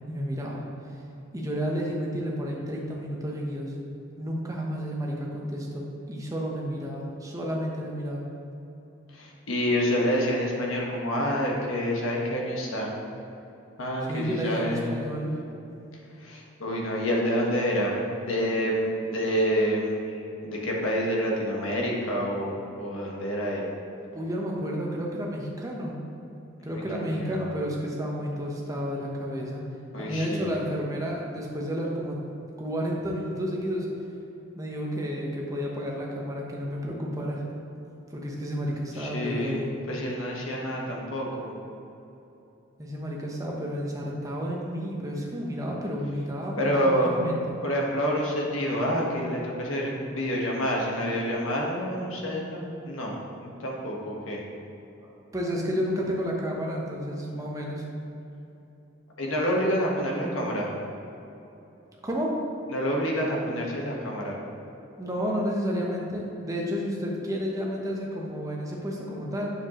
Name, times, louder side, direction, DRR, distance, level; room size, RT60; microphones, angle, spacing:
voice 1, 0.1-0.6 1.3-3.7 4.2-8.2 14.1-15.3 24.1-25.9 26.6-29.6 30.0-32.2 32.6-33.9 34.6-37.4 38.1-39.7 42.8-47.4 55.0-57.8 62.0-62.3 65.0-69.5, equal, 15° right, -2 dB, 1.0 m, -31 dB
voice 2, 9.1-12.9 13.8-14.9 16.2-23.6 26.7-27.4 29.9-30.6 38.9-41.5 46.6-47.1 47.6-54.4 59.2-60.7 62.7-64.4, equal, 80° left, -2 dB, 1.3 m, -28 dB
7.3 x 6.9 x 3.0 m, 2.9 s
head